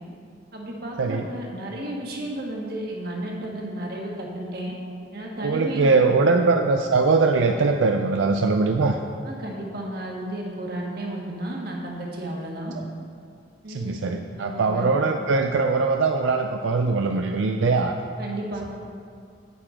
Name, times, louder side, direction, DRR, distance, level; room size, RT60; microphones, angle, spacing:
voice 1, 0.5-4.7 5.1-5.9 6.2-6.3 9.2-12.7 13.6-13.9 14.4-14.9 18.2-18.6, right 1 dB, 55° right, -1 dB, 1.5 m, -33 dB
voice 2, 5.4-9.0 13.7-17.9, right 3 dB, 90° right, 4 dB, 0.5 m, -21 dB
9.3 x 8.7 x 3.7 m, 2.3 s
head